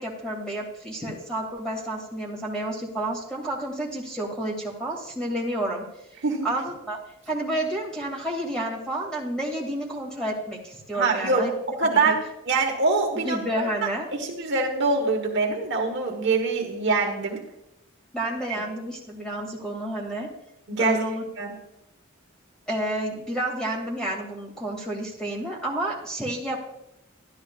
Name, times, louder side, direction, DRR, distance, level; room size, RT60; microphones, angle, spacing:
voice 1, 0.0-5.8 6.4-7.0 7.3-11.5 11.8-12.1 13.2-14.1 18.1-20.3 20.8-21.2 22.7-26.6, right 1 dB, 5° left, -2 dB, 2.2 m, -30 dB
voice 2, 10.9-11.5 11.8-13.4 14.1-17.4 18.5-18.6 20.7-21.0 21.4-21.6, right 3 dB, 60° right, 1 dB, 1.2 m, -24 dB
12.5 x 11.5 x 2.4 m, 0.84 s
head